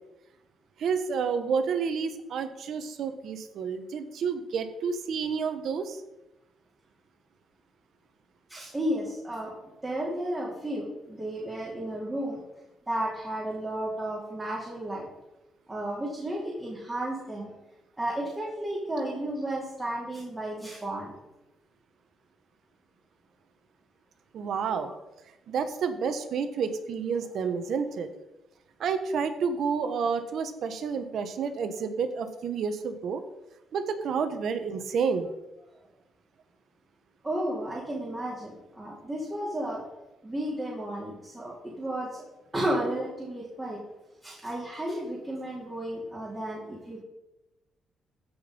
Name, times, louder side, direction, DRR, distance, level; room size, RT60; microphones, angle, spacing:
voice 1, 0.8-6.0 24.3-24.9 25.5-28.1 28.8-33.2 33.7-35.3, right 6 dB, 65° right, 9 dB, 1.2 m, -30 dB
voice 2, 8.5-9.5 9.8-12.4 12.9-15.1 15.7-17.5 18.0-21.1 37.2-38.5 38.7-39.8 40.2-42.2 42.5-43.8 44.2-47.0, right 1 dB, 15° right, -5 dB, 3.6 m, -33 dB
15.5 x 5.4 x 5.4 m, 0.97 s
cardioid pair, 90°, 0 cm